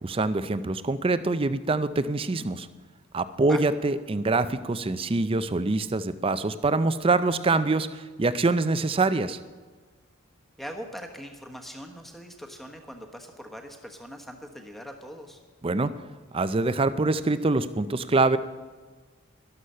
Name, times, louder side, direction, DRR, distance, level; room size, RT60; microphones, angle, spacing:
voice 1, 0.0-2.7 3.1-9.4 15.6-15.9 16.3-18.4, right 3 dB, 25° right, 13 dB, 0.4 m, -25 dB
voice 2, 10.6-15.4, equal, ahead, 3 dB, 1.1 m, -41 dB
13.0 x 11.5 x 5.6 m, 1.4 s
head